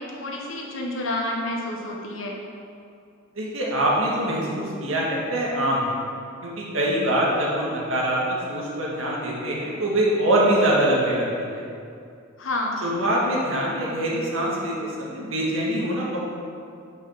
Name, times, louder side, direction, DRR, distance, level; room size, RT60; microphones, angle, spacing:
voice 1, 0.0-2.3 12.4-12.8, left 1 dB, 70° left, 0 dB, 1.2 m, -29 dB
voice 2, 3.4-6.0 6.4-11.2 11.5-11.6 12.8-16.2, right 1 dB, 75° right, -4 dB, 1.8 m, -24 dB
6.0 x 5.8 x 5.7 m, 2.5 s
head